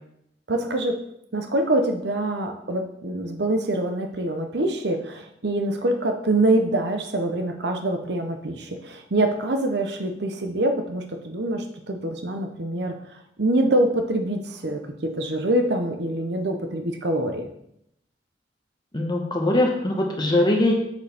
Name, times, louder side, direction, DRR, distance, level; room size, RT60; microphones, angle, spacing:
voice 1, 0.5-1.0 1.3-17.5, right 1 dB, 65° right, 5 dB, 0.8 m, -25 dB
voice 2, 18.9-20.7, left 1 dB, 25° left, 0 dB, 1.2 m, -21 dB
8.2 x 6.6 x 3.5 m, 0.76 s
head